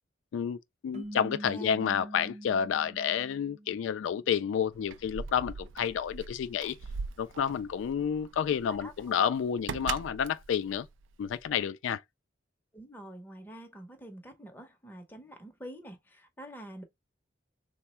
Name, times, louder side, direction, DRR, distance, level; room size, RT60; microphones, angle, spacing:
voice 1, 0.3-6.8 7.2-10.9 11.2-12.0, left 8 dB, 85° left, 0.3 m, -30 dB
sound 1, 0.9-4.3, right 1 dB, 35° right, 0.6 m, -44 dB
Keys jangling, 4.7-11.6, right 5 dB, 90° right, 0.4 m, -41 dB
voice 2, 8.5-8.9 12.7-16.8, right 1 dB, 10° left, 0.6 m, -47 dB
3.4 x 2.0 x 4.2 m
head